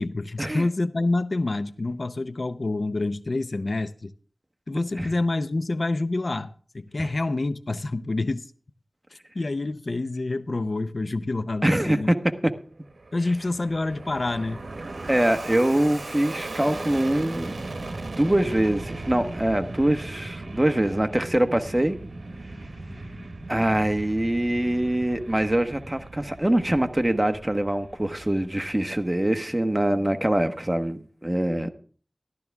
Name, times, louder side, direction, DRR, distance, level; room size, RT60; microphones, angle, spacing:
voice 1, 0.0-4.1 4.7-8.5 9.3-12.1 13.1-14.6 22.9-23.2 31.6-31.7, left 2 dB, 70° left, 0.6 m, -27 dB
voice 2, 11.6-12.1 15.1-17.5 18.2-22.0 23.5-31.7, right 1 dB, 25° right, 1.3 m, -24 dB
Fixed-wing aircraft airplane, 12.7-29.3, right 2 dB, 90° right, 1.0 m, -38 dB
14.0 x 12.0 x 3.5 m
wide cardioid pair, 45°, 0 cm